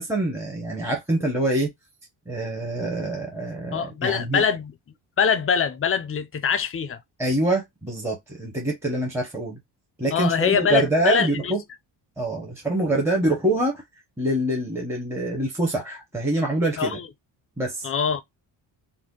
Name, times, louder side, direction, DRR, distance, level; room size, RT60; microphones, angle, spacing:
voice 1, 0.0-1.7 2.3-4.4 7.2-9.6 10.0-11.6 12.2-13.8 14.2-17.0 17.6-17.9, right 1 dB, 5° right, 0.7 m, -25 dB
voice 2, 3.7-4.7 5.2-7.0 10.1-11.5 16.8-17.1 17.8-18.2, left 7 dB, 35° left, 0.4 m, -23 dB
2.5 x 2.1 x 3.5 m
cardioid pair, 95°, 43 cm